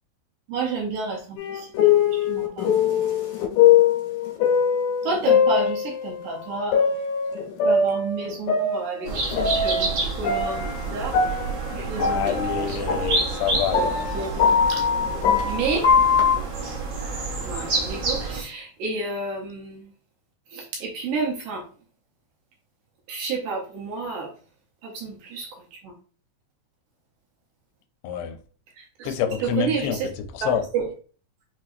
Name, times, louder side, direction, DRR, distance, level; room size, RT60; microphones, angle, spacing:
voice 1, 0.5-2.7 5.0-6.8 7.6-11.2 11.8-12.8 13.7-14.3 14.7-14.8 15.5-15.9 17.4-19.9 20.5-21.7 23.1-24.3 24.8-25.9 28.8-29.1 29.4-30.1 30.4-30.9, right 4 dB, 75° right, 2.1 m, -30 dB
sound 1, 1.4-6.2 6.7-10.0 10.2-16.4, left 6 dB, 65° left, 2.4 m, -22 dB
sound 2, 9.0-18.4, right 3 dB, 55° right, 1.8 m, -29 dB
voice 2, 12.0-13.9 28.0-28.4 29.0-30.0 30.3-30.6, left 8 dB, 85° left, 2.5 m, -27 dB
6.2 x 2.9 x 2.5 m
omnidirectional pair, 4.4 m